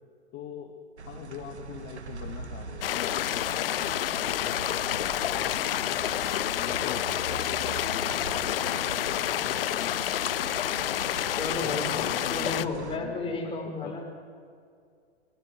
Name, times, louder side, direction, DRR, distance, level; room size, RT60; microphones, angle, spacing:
voice 1, 0.3-0.8 1.1-4.9 5.2-6.0 6.5-10.2 11.6-14.0, left 9 dB, 30° left, 3 dB, 2.0 m, -42 dB
sound 1, 1.0-13.0, right 4 dB, 80° right, 1.7 m, -41 dB
sound 2, 2.8-12.6, left 12 dB, 60° left, 0.7 m, -29 dB
voice 2, 11.3-11.9 12.3-14.0, left 3 dB, 15° left, 0 dB, 5.3 m, -33 dB
24.5 x 17.0 x 7.7 m, 2.2 s
figure-of-eight pair, 105°, 33 cm